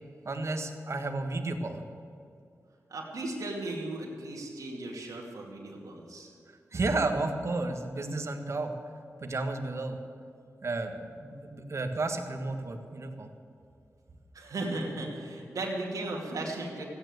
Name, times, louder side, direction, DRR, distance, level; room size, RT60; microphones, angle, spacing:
voice 1, 0.2-1.8 6.7-8.7 9.2-10.0 10.6-13.3, right 2 dB, 55° right, 5 dB, 1.6 m, -32 dB
voice 2, 2.9-6.3 14.3-16.8, right 2 dB, 85° right, -1 dB, 2.5 m, -36 dB
15.0 x 9.4 x 8.0 m, 2.5 s
cardioid pair, 65°, 6 cm